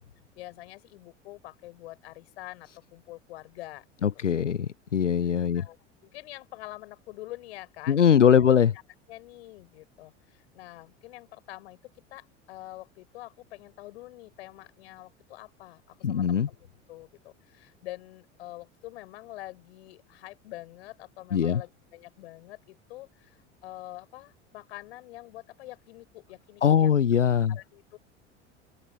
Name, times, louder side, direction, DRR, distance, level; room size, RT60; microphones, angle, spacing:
voice 1, 0.4-3.9 4.1-4.3 5.2-5.8 6.0-8.5 8.7-8.8 9.1-27.0 27.5-28.0, left 17 dB, 60° left, 5.9 m, -46 dB
voice 2, 4.0-5.6 7.9-8.7 16.0-16.5 21.3-21.6 26.6-27.5, left 8 dB, 85° left, 0.6 m, -21 dB
open air
figure-of-eight pair, 75°, 36 cm